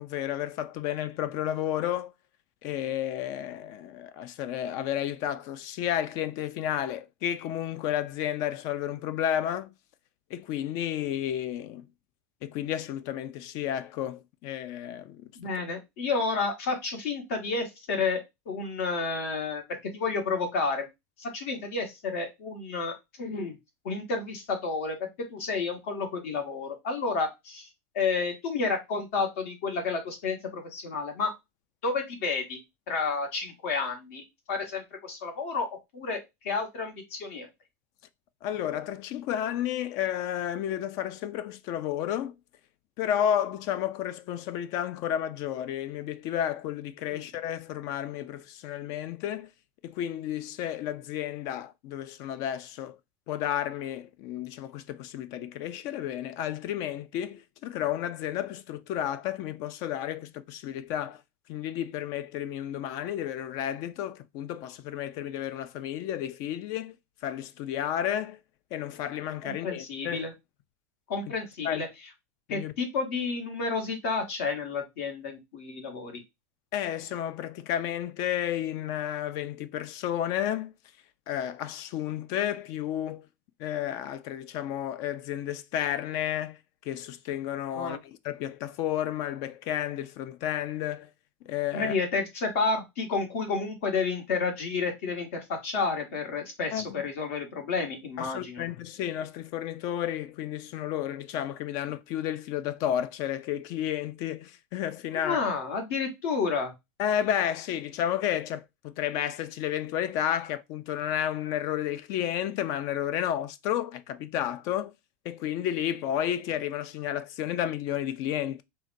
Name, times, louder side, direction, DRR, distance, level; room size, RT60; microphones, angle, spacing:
voice 1, 0.0-2.1 2.6-9.7 10.3-11.9 12.4-15.3 38.4-42.3 43.0-49.5 49.8-53.0 53.3-61.2 61.5-67.0 67.2-68.4 68.7-70.2 71.6-71.8 72.5-72.7 76.7-80.7 81.3-83.3 83.6-86.6 86.9-91.1 91.5-92.0 96.7-97.0 98.2-105.4 107.0-114.9 115.2-118.6, left 11 dB, 55° left, 0.3 m, -32 dB
voice 2, 15.3-18.2 18.5-19.6 19.9-20.9 21.2-23.6 23.8-27.7 27.9-31.3 31.8-32.6 32.9-37.5 47.1-47.3 69.4-70.3 71.1-71.9 72.5-76.2 87.7-88.0 91.7-98.6 105.2-106.7, left 4 dB, 75° left, 1.3 m, -31 dB
3.8 x 2.2 x 2.6 m
supercardioid pair, 120°, 7 cm